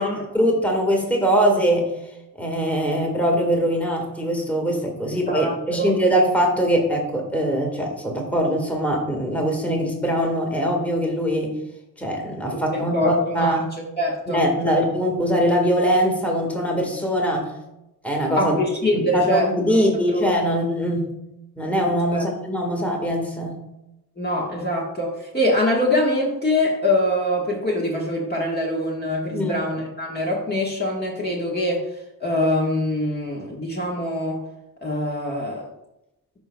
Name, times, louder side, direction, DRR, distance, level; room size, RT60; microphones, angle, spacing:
voice 1, 0.3-1.9 2.4-11.5 12.0-13.7 14.3-17.5 18.0-18.5 18.9-21.1 21.6-23.6 29.3-29.6, equal, 5° left, 0 dB, 1.6 m, -22 dB
voice 2, 12.7-13.1 13.4-13.5 14.0-14.7 18.4-20.5 22.1-22.2 24.2-31.8 32.2-34.4 34.8-35.6, left 1 dB, 25° left, -3 dB, 1.4 m, -24 dB
12.0 x 5.1 x 2.3 m, 0.92 s
cardioid pair, 115°, 38 cm